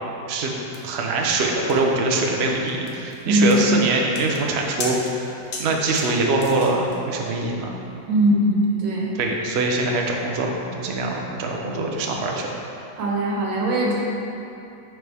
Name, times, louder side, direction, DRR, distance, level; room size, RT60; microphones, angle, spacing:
sound 1, 0.7-7.0, left 3 dB, 55° left, 1.2 m, -37 dB
voice 1, 0.8-7.8 9.2-12.5, right 2 dB, 55° right, 0 dB, 0.7 m, -23 dB
voice 2, 8.1-9.1 13.0-14.0, right 1 dB, 75° right, -3 dB, 1.9 m, -20 dB
10.5 x 4.9 x 3.5 m, 2.8 s
omnidirectional pair, 2.0 m